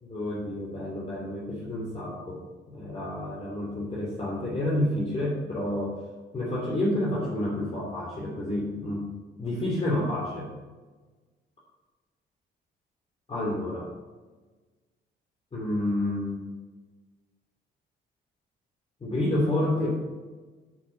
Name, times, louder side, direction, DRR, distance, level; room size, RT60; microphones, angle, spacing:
voice 1, 0.0-2.4 2.7-6.0 6.3-9.0 9.4-10.5 13.3-13.9 15.5-16.4 19.0-19.9, left 1 dB, 30° left, -5 dB, 3.2 m, -29 dB
12.0 x 6.1 x 4.2 m, 1.3 s
cardioid pair, 90°, 20 cm